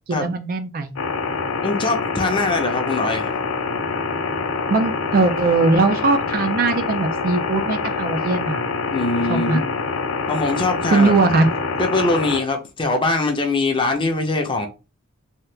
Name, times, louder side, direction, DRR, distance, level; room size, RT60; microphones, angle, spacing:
voice 1, 0.1-0.9 4.7-8.6 9.3-9.6 10.9-11.5, right 3 dB, 45° right, 0.4 m, -20 dB
sound 1, 1.0-12.4, left 4 dB, 80° left, 0.5 m, -25 dB
voice 2, 1.6-3.3 8.9-9.7 10.3-11.1 11.8-14.7, left 2 dB, 25° left, 0.6 m, -22 dB
2.8 x 2.3 x 3.2 m
head